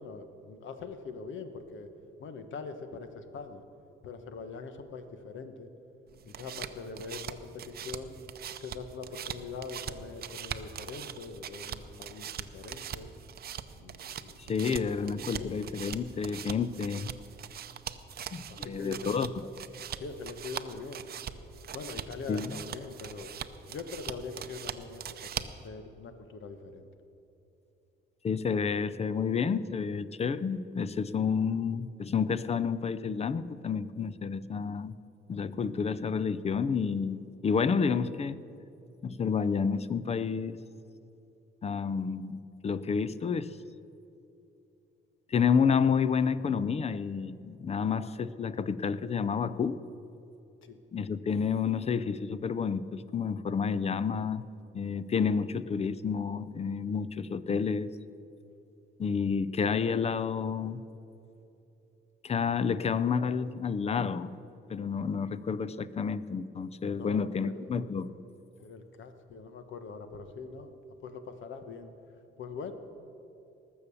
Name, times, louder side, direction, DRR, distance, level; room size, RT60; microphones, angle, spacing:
voice 1, 0.0-1.9 2.2-3.6 4.0-5.7 6.2-8.2 8.6-12.3 12.5-13.1 13.8-15.5 18.5-19.5 20.0-21.0 21.7-23.3 23.7-26.9 50.6-50.8 66.9-67.8 68.6-70.7 71.0-71.9 72.4-72.7, left 4 dB, 70° left, 9 dB, 1.1 m, -42 dB
sound 1, 6.1-25.7, right 8 dB, 50° right, 0.6 m, -42 dB
voice 2, 14.4-17.1 18.3-19.3 22.3-22.5 28.2-35.0 35.3-38.4 39.0-40.6 41.6-43.6 45.3-49.8 50.9-54.4 54.7-57.9 59.0-60.8 62.2-64.3 64.7-68.1, left 6 dB, 30° left, 16 dB, 0.4 m, -30 dB
19.5 x 6.9 x 7.0 m, 2.8 s
cardioid pair, 120°, 21 cm